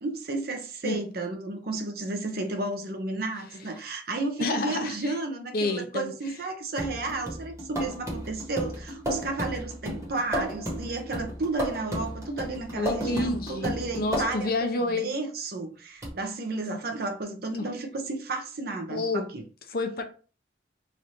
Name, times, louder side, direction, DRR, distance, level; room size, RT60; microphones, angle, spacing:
voice 1, 0.0-19.4, right 2 dB, 55° right, 0.7 m, -32 dB
voice 2, 4.4-5.0 5.5-6.1 12.7-15.1 18.9-19.3 19.7-20.0, left 2 dB, 55° left, 0.6 m, -29 dB
sound 1, 6.8-14.6 16.0-16.1, equal, 20° right, 1.2 m, -34 dB
3.2 x 2.5 x 4.1 m
head